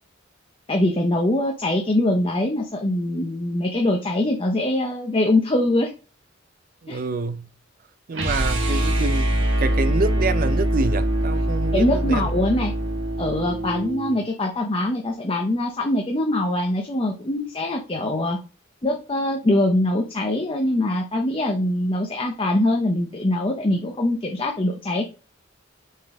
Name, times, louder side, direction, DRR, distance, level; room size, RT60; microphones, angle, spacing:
voice 1, 0.7-5.9 6.9-7.0 11.7-12.7 13.2-18.4 18.8-25.1, left 1 dB, 30° left, 0.8 m, -23 dB
voice 2, 6.8-7.5 8.1-12.3, right 3 dB, 45° right, 0.6 m, -27 dB
sound 1, 8.1-14.2, right 1 dB, 75° right, 1.8 m, -23 dB
5.5 x 3.7 x 4.9 m
head